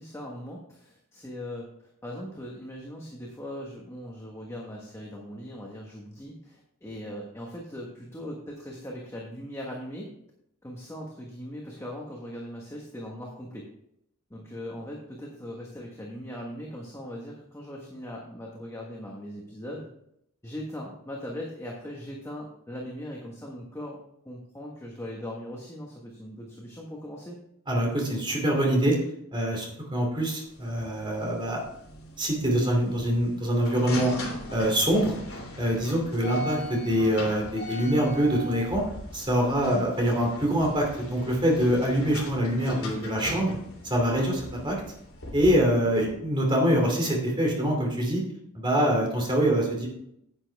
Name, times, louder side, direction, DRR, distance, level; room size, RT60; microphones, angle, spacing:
voice 1, 0.0-1.7 2.0-10.1 10.6-13.7 14.3-19.8 20.4-24.0 24.2-27.4 39.5-39.8, equal, 15° left, -2 dB, 1.3 m, -39 dB
voice 2, 27.7-28.9 29.3-31.6 32.2-34.1 34.5-35.2 35.6-38.8 39.1-43.6 43.8-44.7 45.3-48.2 48.5-49.9, equal, 20° right, 0 dB, 2.7 m, -24 dB
sound 1, 30.5-46.1, equal, 65° left, 3.2 m, -39 dB
9.8 x 8.7 x 3.5 m, 0.76 s
head